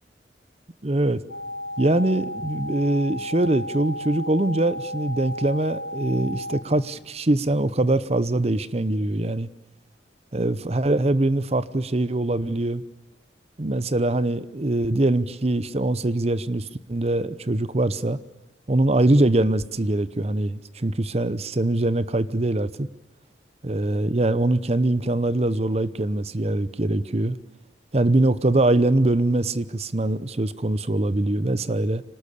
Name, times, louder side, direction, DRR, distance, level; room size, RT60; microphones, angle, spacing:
voice 1, 0.8-1.2 1.8-9.5 10.3-12.8 13.6-18.2 18.7-22.9 23.6-27.4 27.9-32.0, right 2 dB, 35° right, 15 dB, 0.8 m, -23 dB
sound 1, 1.3-6.6, left 1 dB, 85° left, 3.3 m, -34 dB
25.5 x 19.0 x 8.5 m, 1.1 s
head